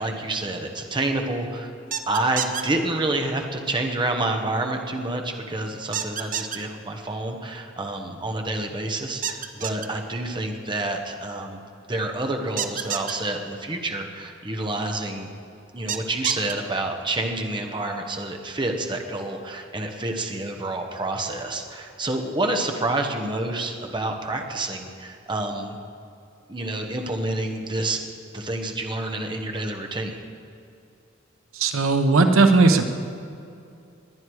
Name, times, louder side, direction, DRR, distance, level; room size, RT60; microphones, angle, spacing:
voice 1, 0.0-1.7 2.1-15.3 15.7-25.8 26.5-28.0 28.3-30.2, right 2 dB, 25° right, 3 dB, 1.2 m, -28 dB
sound 1, 1.9-2.6 5.9-6.6 9.2-9.9 12.6-13.1 15.9-16.5, right 8 dB, 40° right, 0.7 m, -28 dB
voice 2, 31.5-32.8, right 3 dB, 85° right, 7 dB, 0.9 m, -17 dB
21.5 x 9.5 x 4.8 m, 2.5 s
head